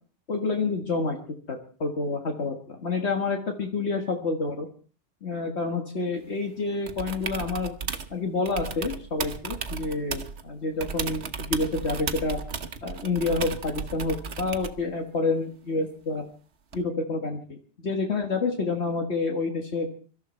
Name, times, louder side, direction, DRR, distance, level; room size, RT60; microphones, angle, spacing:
voice 1, 0.3-1.2 1.5-4.7 5.2-7.8 8.1-12.4 12.8-16.2 16.7-17.6 17.8-19.9, left 3 dB, 65° left, 3 dB, 1.9 m, -28 dB
sound 1, 6.9-8.1 8.5-10.4 10.8-14.8 16.7-16.8, right 5 dB, 65° right, 1.3 m, -34 dB
24.0 x 13.0 x 4.4 m, 0.41 s
omnidirectional pair, 1.2 m